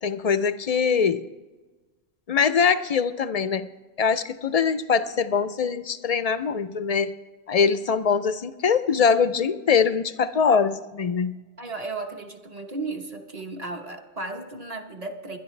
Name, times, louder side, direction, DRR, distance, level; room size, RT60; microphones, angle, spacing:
voice 1, 0.0-1.2 2.3-3.7 4.0-7.1 7.5-11.3, left 6 dB, 50° left, 13 dB, 0.5 m, -22 dB
voice 2, 11.6-15.4, right 3 dB, 35° right, 4 dB, 1.2 m, -34 dB
21.5 x 11.0 x 3.2 m, 1.2 s
omnidirectional pair, 1.1 m